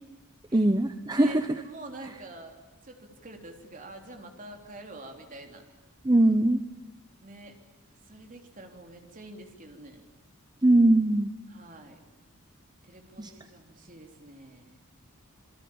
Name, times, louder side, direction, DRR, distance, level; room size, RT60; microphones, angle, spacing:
voice 1, 0.5-1.4 6.0-6.6 10.6-11.3 13.2-13.3, right 1 dB, 20° right, 9 dB, 0.9 m, -21 dB
voice 2, 1.6-2.6 2.8-5.6 7.2-7.6 8.0-10.0 11.5-12.0 12.8-14.8, right 2 dB, 40° right, 3 dB, 3.5 m, -46 dB
27.0 x 24.0 x 8.8 m, 1.0 s
head